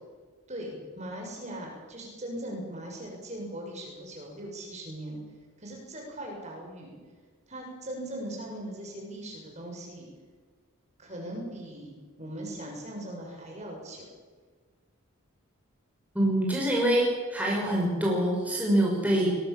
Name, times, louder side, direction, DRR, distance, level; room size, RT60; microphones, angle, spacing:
voice 1, 0.5-5.2 5.6-7.0 7.5-10.1 11.0-14.0, right 1 dB, 30° right, 0 dB, 6.8 m, -39 dB
voice 2, 16.1-19.3, right 1 dB, 5° right, -3 dB, 5.8 m, -25 dB
22.5 x 21.5 x 7.2 m, 1.4 s
head